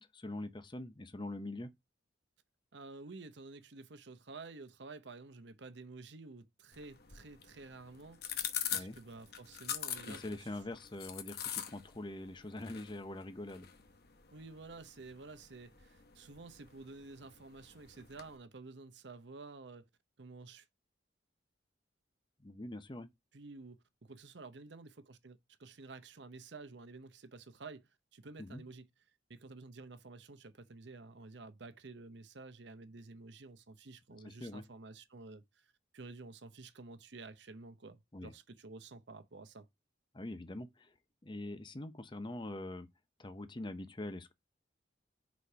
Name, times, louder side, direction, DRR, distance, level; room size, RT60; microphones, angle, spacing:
voice 1, 0.0-1.7 8.7-9.0 10.1-13.7 22.4-23.1 28.4-28.6 34.2-34.6 38.1-38.3 40.1-40.9 41.2-42.9 43.2-44.3, left 1 dB, 25° left, 0.6 m, -43 dB
voice 2, 2.7-10.6 14.3-19.8 20.2-20.7 23.3-28.8 29.3-39.7, right 3 dB, 65° right, 0.8 m, -51 dB
sound 1, 6.7-18.4, left 9 dB, 55° left, 0.9 m, -45 dB
4.9 x 4.1 x 5.6 m
head